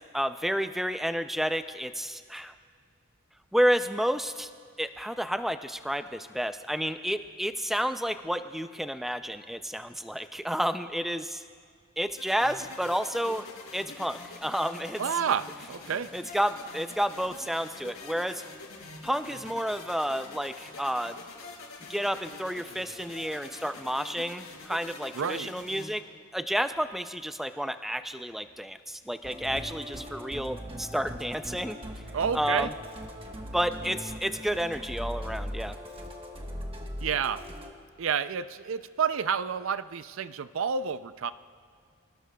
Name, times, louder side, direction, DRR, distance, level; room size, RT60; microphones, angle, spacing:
voice 1, 0.1-2.5 3.5-4.5 4.8-11.4 12.0-13.5 13.7-15.0 16.1-18.4 19.0-21.2 21.9-26.0 26.3-31.8 32.3-32.7 33.5-35.8, equal, ahead, 9 dB, 0.4 m, -30 dB
sound 1, 12.2-25.9, left 3 dB, 80° left, 4.2 m, -45 dB
voice 2, 15.0-16.1 25.1-25.5 32.1-32.7 37.0-37.4 38.0-41.3, right 7 dB, 65° right, 14 dB, 0.4 m, -29 dB
Musical instrument, 29.2-37.7, equal, 25° right, 1.2 m, -40 dB
25.0 x 18.5 x 2.3 m, 2.1 s
head